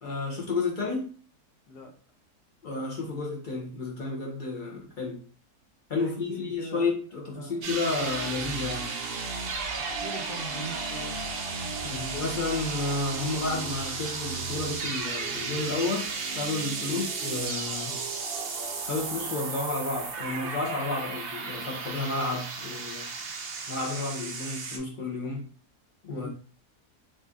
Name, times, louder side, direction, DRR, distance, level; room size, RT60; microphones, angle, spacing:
voice 1, 0.0-1.1 2.6-5.2 5.9-8.9 11.8-18.0 18.8-23.1 23.7-25.5 26.0-26.3, left 3 dB, 50° left, 0.6 m, -31 dB
voice 2, 5.9-7.0 7.3-7.7 9.7-12.4 16.8-17.0 26.1-26.3, equal, 75° left, 1.5 m, -43 dB
sound 1, 7.6-24.8, right 4 dB, 70° right, 0.5 m, -34 dB
3.2 x 2.6 x 3.6 m
omnidirectional pair, 1.7 m